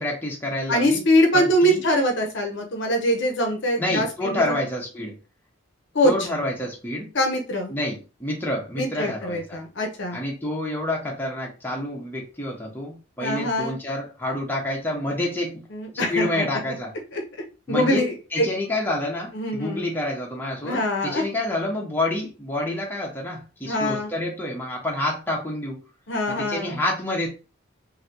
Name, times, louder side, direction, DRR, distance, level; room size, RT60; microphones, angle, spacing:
voice 1, 0.0-1.0 1.3-1.8 3.8-5.1 6.0-7.1 7.7-9.6 10.1-15.6 15.9-16.9 17.7-25.8 26.3-27.3, left 1 dB, 10° left, -2 dB, 0.7 m, -28 dB
voice 2, 0.7-4.6 5.9-6.1 7.1-7.7 8.8-10.2 13.2-13.8 15.7-16.8 17.1-17.2 17.7-18.5 19.3-19.9 20.6-21.2 23.7-24.1 26.1-26.8, equal, 55° left, 3 dB, 0.7 m, -23 dB
3.1 x 2.6 x 2.7 m, 0.32 s
head